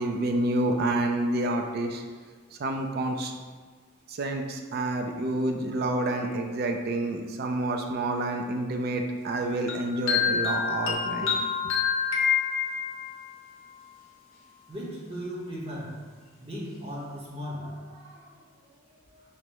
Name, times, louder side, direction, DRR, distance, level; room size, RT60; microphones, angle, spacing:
voice 1, 0.0-2.0 2.6-3.3 4.1-11.4, right 2 dB, 45° right, 4 dB, 0.3 m, -28 dB
sound 1, 9.7-13.2, left 6 dB, 65° left, 0.8 m, -27 dB
voice 2, 14.7-16.1 16.4-19.2, equal, 25° right, -5 dB, 0.8 m, -38 dB
5.2 x 2.0 x 4.5 m, 1.5 s
head